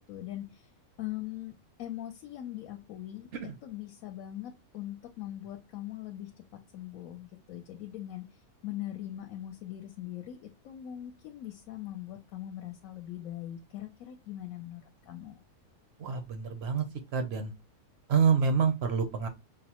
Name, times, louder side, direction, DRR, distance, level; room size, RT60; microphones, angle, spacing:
voice 1, 0.1-0.7 1.0-3.3 3.6-6.3 6.7-15.4, left 13 dB, 70° left, 5 dB, 1.0 m, -41 dB
voice 2, 16.0-16.9 17.1-17.5 18.1-19.3, right 6 dB, 65° right, 7 dB, 0.6 m, -27 dB
5.3 x 2.0 x 2.8 m, 0.23 s
omnidirectional pair, 1.6 m